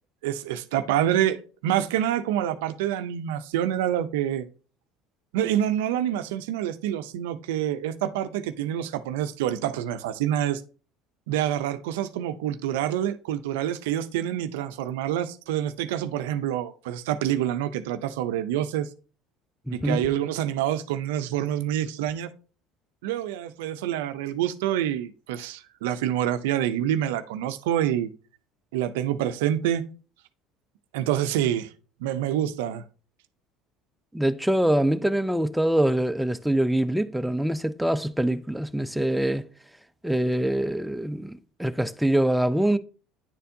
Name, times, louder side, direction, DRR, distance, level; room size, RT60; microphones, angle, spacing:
voice 1, 0.2-4.4 5.3-10.6 11.3-18.9 19.7-22.3 23.0-28.1 28.7-29.8 30.9-31.7 32.0-32.8, right 11 dB, 85° right, 0.5 m, -27 dB
voice 2, 19.7-20.0 34.1-39.4 40.0-42.8, right 1 dB, 5° right, 0.5 m, -24 dB
9.9 x 4.3 x 2.7 m
supercardioid pair, 90°, 0 cm